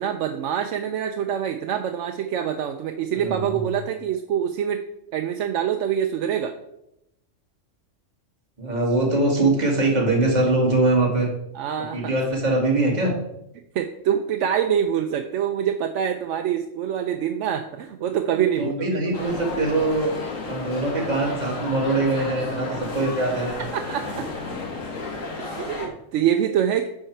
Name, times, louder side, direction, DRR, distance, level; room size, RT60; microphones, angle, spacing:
voice 1, 0.0-4.8 5.1-6.6 11.5-12.1 13.7-18.7 19.0-19.1 23.7-24.3 25.4-26.9, right 9 dB, 75° right, 6 dB, 0.9 m, -25 dB
voice 2, 3.1-3.6 8.6-11.3 11.9-13.1 18.3-20.1 20.5-23.6, right 2 dB, 35° right, -1 dB, 1.9 m, -22 dB
sound 1, 19.1-25.9, left 3 dB, 85° left, 1.7 m, -32 dB
9.9 x 4.8 x 4.5 m, 0.84 s
omnidirectional pair, 1.3 m